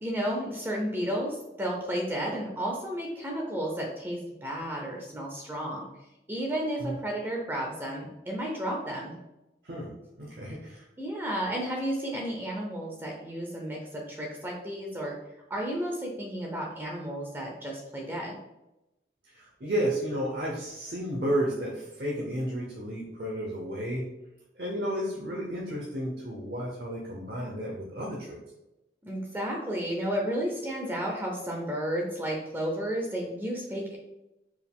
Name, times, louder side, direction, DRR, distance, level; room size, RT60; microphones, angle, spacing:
voice 1, 0.0-5.9 6.3-9.2 11.0-15.1 15.5-18.4 29.0-34.0, equal, 15° right, -1 dB, 0.5 m, -32 dB
voice 2, 10.2-10.8 19.3-24.0 24.6-28.4, equal, 60° right, -3 dB, 0.7 m, -32 dB
4.6 x 2.4 x 3.5 m, 0.93 s
head